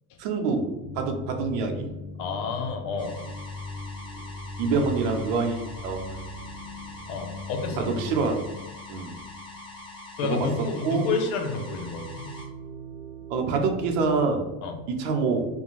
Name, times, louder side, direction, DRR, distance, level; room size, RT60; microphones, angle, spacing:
voice 1, 0.2-0.7 0.9-1.9 4.6-6.3 7.8-8.4 8.9-9.1 10.2-10.5 10.8-11.1 13.3-14.5 14.9-15.4, right 4 dB, 70° right, 3 dB, 0.7 m, -26 dB
sound 1, 0.8-10.7 11.0-14.2, left 2 dB, 30° right, 0.6 m, -40 dB
voice 2, 2.2-3.2 7.1-7.9 10.2-12.3 14.6-14.8, left 4 dB, 75° left, 5 dB, 0.7 m, -30 dB
sound 2, 3.0-12.5, left 1 dB, 15° left, 0.4 m, -44 dB
2.5 x 2.2 x 3.0 m, 1.0 s
cardioid pair, 135°, 42 cm